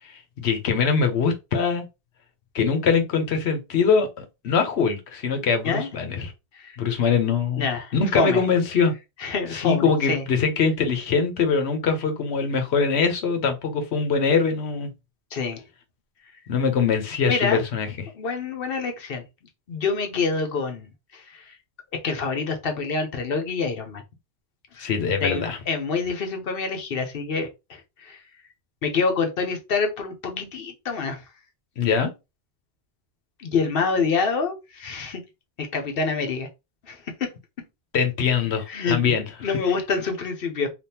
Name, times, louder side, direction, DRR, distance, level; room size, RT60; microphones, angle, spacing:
voice 1, 0.0-1.8 2.5-6.3 6.8-7.6 7.9-8.9 9.5-14.9 16.5-18.1 24.8-25.6 31.8-32.1 37.9-39.2, left 5 dB, 80° left, 1.0 m, -23 dB
voice 2, 7.6-8.4 9.2-10.3 15.3-15.6 17.3-17.6 18.1-19.2 19.7-21.6 21.9-24.0 24.7-24.9 25.2-28.2 28.8-31.2 33.4-35.2 35.6-36.5 36.8-37.3 38.7-39.0 39.4-40.7, left 4 dB, 60° left, 0.9 m, -27 dB
3.4 x 2.4 x 2.8 m
omnidirectional pair, 1.1 m